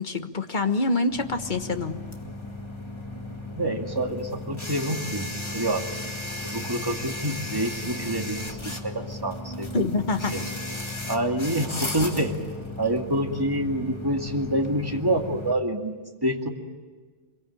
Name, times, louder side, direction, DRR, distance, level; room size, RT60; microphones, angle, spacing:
voice 1, 0.0-2.0 7.8-7.9 9.7-10.4, left 3 dB, 40° left, 7 dB, 1.5 m, -26 dB
sound 1, 1.1-15.5, left 2 dB, 25° left, 1.9 m, -35 dB
voice 2, 3.5-5.9 6.4-9.7 10.3-10.4 11.1-12.4 12.8-15.9 16.2-16.5, right 1 dB, 20° right, 2 dB, 2.3 m, -27 dB
25.5 x 23.5 x 8.7 m, 1.4 s
omnidirectional pair, 1.2 m